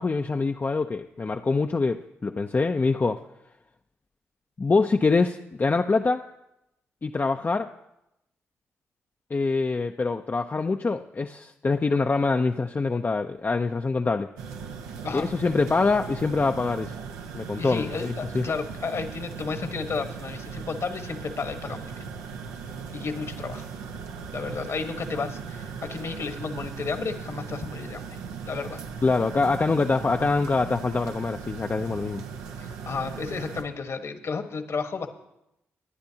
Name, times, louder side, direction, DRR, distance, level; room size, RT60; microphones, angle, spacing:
voice 1, 0.0-3.2 4.6-6.2 7.0-7.7 9.3-14.3 15.1-16.9 17.3-18.4 29.0-32.2, left 3 dB, 35° left, 5 dB, 0.6 m, -25 dB
sound 1, 14.4-33.6, right 6 dB, 85° right, 0.9 m, -38 dB
voice 2, 17.6-22.0 22.9-23.7 24.3-28.0 28.4-28.8 32.6-35.1, left 5 dB, 55° left, 7 dB, 1.4 m, -32 dB
20.5 x 10.5 x 2.9 m, 0.85 s
hypercardioid pair, 45°, 6 cm